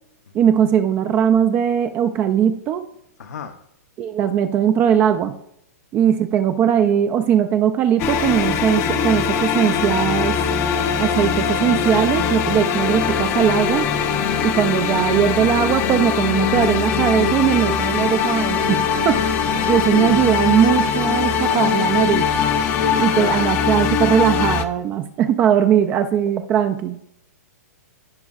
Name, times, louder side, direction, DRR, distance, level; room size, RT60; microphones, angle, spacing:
voice 1, 0.3-2.8 4.0-5.3 5.9-10.4 11.0-13.9 14.4-19.3 19.7-22.3 23.0-27.0, right 9 dB, 20° right, 8 dB, 0.4 m, -19 dB
voice 2, 3.2-3.5 19.4-20.2 22.8-23.4, left 6 dB, 85° left, 5 dB, 0.8 m, -29 dB
sound 1, 8.0-24.6, left 6 dB, 25° left, 0.6 m, -21 dB
15.0 x 5.3 x 2.4 m, 0.75 s
hypercardioid pair, 155°, 9 cm